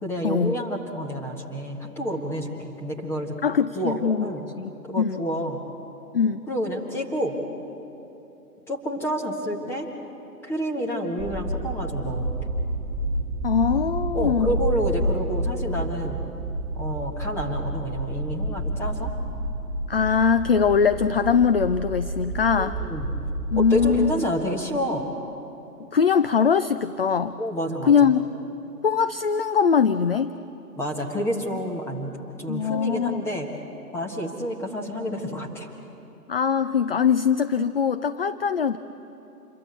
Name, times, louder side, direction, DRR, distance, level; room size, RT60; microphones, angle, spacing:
voice 1, 0.0-3.4 3.7-4.5 4.9-5.6 6.5-7.4 8.7-9.9 10.4-12.5 14.1-16.2 16.7-19.1 22.6-23.2 23.5-25.1 27.4-28.2 30.8-33.5 33.9-35.7, equal, 5° left, 1 dB, 1.4 m, -29 dB
voice 2, 3.4-4.3 4.6-4.7 5.0-5.2 6.1-6.4 13.4-14.5 19.9-22.8 23.5-24.1 25.9-27.3 27.9-28.3 28.8-30.4 32.5-33.2 36.3-38.8, left 6 dB, 40° left, 11 dB, 0.5 m, -21 dB
sound 1, 11.2-24.1, right 1 dB, 15° right, 6.5 m, -29 dB
27.5 x 22.5 x 8.1 m, 3.0 s
figure-of-eight pair, 145°, 48 cm